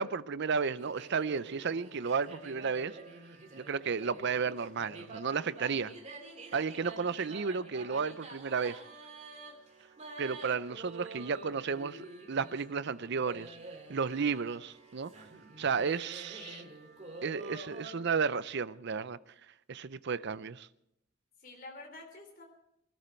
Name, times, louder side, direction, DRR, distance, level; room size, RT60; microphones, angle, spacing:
voice 1, 0.0-3.0 3.5-5.9 6.5-8.8 10.2-13.6 13.9-15.1 15.6-16.6 17.2-19.2 19.7-20.7, right 5 dB, 60° right, 0.6 m, -33 dB
sound 1, 0.8-17.9, right 2 dB, 35° right, 2.8 m, -48 dB
voice 2, 16.3-16.7 21.4-22.4, left 3 dB, 45° left, 3.6 m, -49 dB
24.0 x 13.0 x 4.4 m
head